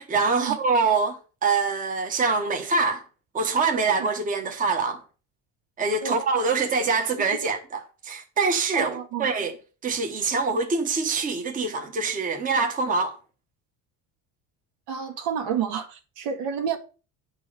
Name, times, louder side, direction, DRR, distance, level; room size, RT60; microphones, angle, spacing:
voice 1, 0.0-3.0 3.3-5.0 5.8-8.9 9.2-9.5 9.8-13.1, right 4 dB, 20° right, 1.2 m, -24 dB
voice 2, 8.7-9.3 12.8-12.9 14.9-16.8, right 7 dB, 75° right, 1.9 m, -30 dB
9.5 x 4.7 x 6.7 m
cardioid pair, 170°, 38 cm